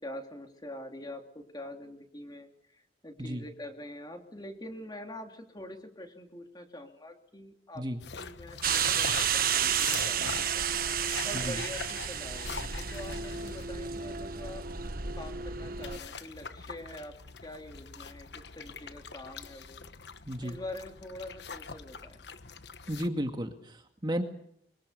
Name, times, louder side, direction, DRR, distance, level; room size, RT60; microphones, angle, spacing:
voice 1, 0.0-7.8 8.1-14.7 15.2-17.1 17.4-19.8 20.4-22.2, left 1 dB, 25° left, 4 dB, 3.1 m, -45 dB
sound 1, 8.0-23.1, left 5 dB, 70° left, 1.2 m, -43 dB
sound 2, 8.6-16.0, right 8 dB, 55° right, 1.4 m, -31 dB
voice 2, 20.2-20.6 22.9-24.2, equal, 25° right, 5 dB, 2.0 m, -33 dB
24.0 x 23.5 x 6.8 m, 0.71 s
head